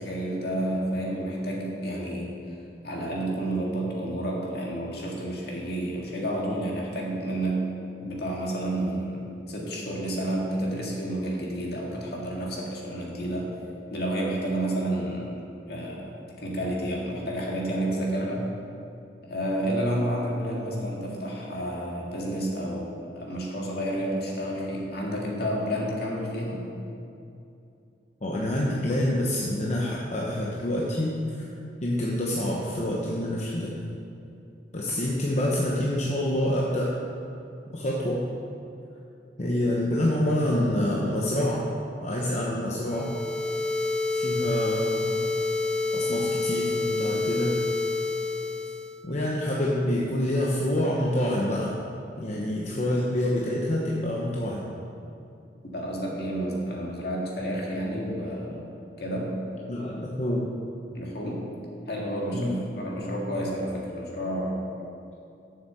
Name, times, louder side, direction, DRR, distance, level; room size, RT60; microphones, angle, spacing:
voice 1, 0.0-2.5 2.8-7.7 8.0-13.5 13.9-15.3 15.7-18.5 19.2-26.7 55.6-58.6 59.0-59.4 60.9-61.5 61.9-64.6, right 1 dB, 65° left, -3 dB, 2.0 m, -30 dB
voice 2, 28.2-31.5 31.8-33.7 34.7-36.9 37.7-38.3 39.4-41.7 42.0-43.1 44.1-45.2 45.9-47.6 49.0-51.7 52.1-54.6 59.7-60.5 62.3-62.6, left 1 dB, 40° left, -4 dB, 0.9 m, -27 dB
sound 1, 42.9-49.0, left 3 dB, 5° left, 0.3 m, -28 dB
7.2 x 7.0 x 6.8 m, 2.7 s
head